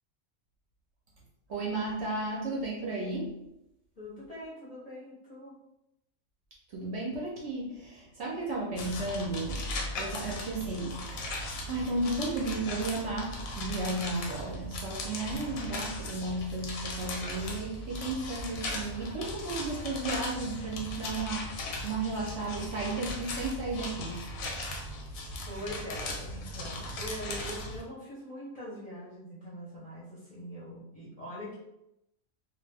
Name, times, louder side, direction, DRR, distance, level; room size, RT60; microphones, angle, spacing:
voice 1, 1.5-3.4 6.7-21.5 21.8-24.2, right 2 dB, 60° right, -3 dB, 0.7 m, -34 dB
voice 2, 4.0-5.5 25.5-31.5, equal, 35° left, -9 dB, 0.7 m, -42 dB
sound 1, 8.8-27.8, left 1 dB, 80° left, 1.0 m, -38 dB
2.4 x 2.2 x 3.3 m, 0.86 s
omnidirectional pair, 1.5 m